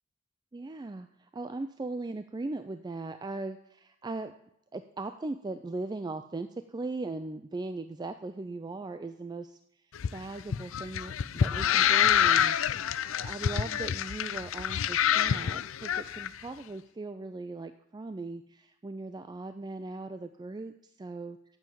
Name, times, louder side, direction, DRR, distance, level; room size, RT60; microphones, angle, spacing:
voice 1, 0.5-4.3 4.7-9.6 10.1-12.6 13.2-21.4, right 2 dB, 20° right, 9 dB, 0.3 m, -39 dB
sound 1, 9.9-16.3, left 9 dB, 70° left, 0.4 m, -27 dB
9.1 x 7.7 x 7.0 m, 0.79 s
head